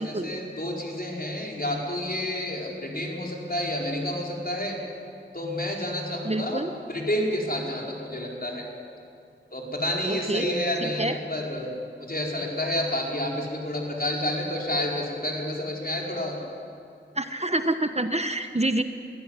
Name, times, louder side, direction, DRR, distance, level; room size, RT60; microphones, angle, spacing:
voice 1, 0.0-4.8 5.3-6.6 6.9-8.7 9.5-11.7 12.0-16.4, left 1 dB, 50° left, -2 dB, 4.7 m, -29 dB
voice 2, 6.2-6.7 10.0-10.5 10.8-11.2 17.1-18.8, right 1 dB, 30° right, 8 dB, 1.1 m, -27 dB
22.5 x 16.0 x 9.8 m, 2.4 s
wide cardioid pair, 45°, 20 cm